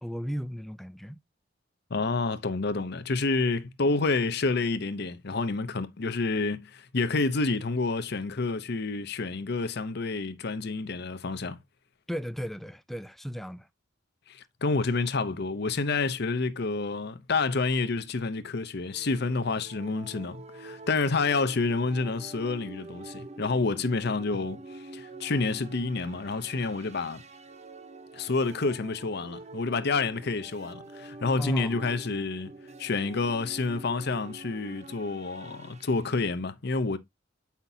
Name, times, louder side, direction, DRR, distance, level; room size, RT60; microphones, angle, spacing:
voice 1, 0.0-1.2 12.1-13.7 31.4-31.9, equal, ahead, 0.4 m, -36 dB
voice 2, 1.9-11.6 14.3-27.2 28.1-32.5 32.8-37.0, left 3 dB, 60° left, 0.7 m, -29 dB
sound 1, 18.8-36.1, right 2 dB, 35° right, 0.8 m, -46 dB
8.3 x 5.8 x 2.7 m
head